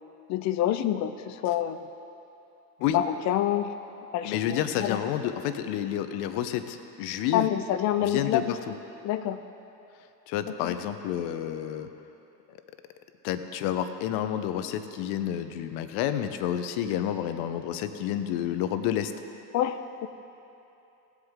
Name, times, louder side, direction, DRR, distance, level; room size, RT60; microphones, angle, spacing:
voice 1, 0.3-1.9 2.9-3.7 4.1-5.0 7.3-8.8 9.0-9.4 10.5-10.8 19.5-20.1, left 11 dB, 35° left, 11 dB, 0.5 m, -27 dB
voice 2, 4.2-7.5 8.0-8.7 10.3-11.9 13.2-19.1, left 10 dB, 55° left, 9 dB, 0.9 m, -29 dB
17.5 x 8.1 x 3.7 m, 2.9 s
hypercardioid pair, 95°, 48 cm